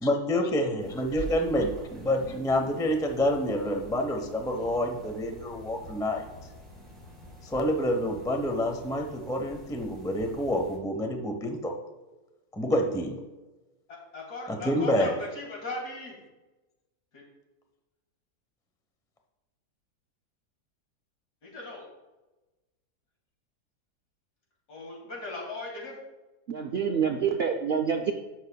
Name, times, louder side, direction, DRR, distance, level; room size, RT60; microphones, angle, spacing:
voice 1, 0.0-6.3 7.4-11.7 12.5-13.2 14.5-15.1, left 1 dB, 5° left, 4 dB, 0.3 m, -28 dB
sound 1, 0.8-10.8, equal, 25° right, 3.1 m, -46 dB
voice 2, 13.9-16.2 17.1-17.2 21.4-21.9 24.7-26.0, left 2 dB, 75° left, -3 dB, 3.0 m, -38 dB
voice 3, 26.5-28.1, right 7 dB, 85° right, 5 dB, 0.5 m, -27 dB
15.0 x 6.4 x 2.2 m, 1.1 s
omnidirectional pair, 1.7 m